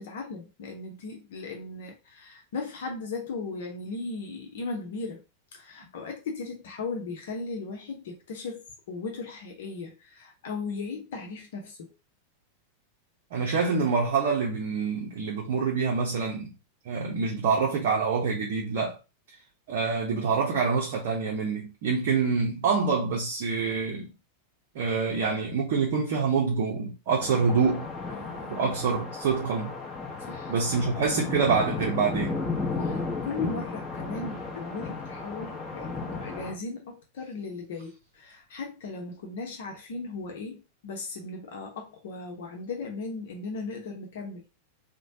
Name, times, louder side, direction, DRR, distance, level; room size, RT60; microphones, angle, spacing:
voice 1, 0.0-5.2 5.5-11.9 28.1-28.7 30.3-30.5 32.8-44.4, left 3 dB, 55° left, 0.8 m, -37 dB
voice 2, 13.3-16.5 16.9-19.0 19.7-24.1 24.7-27.9 28.5-29.7 30.5-32.4, right 5 dB, 50° right, 0.6 m, -26 dB
sound 1, 27.2-36.5, left 3 dB, 10° left, 1.0 m, -34 dB
3.1 x 2.1 x 2.6 m
figure-of-eight pair, 90°, 0 cm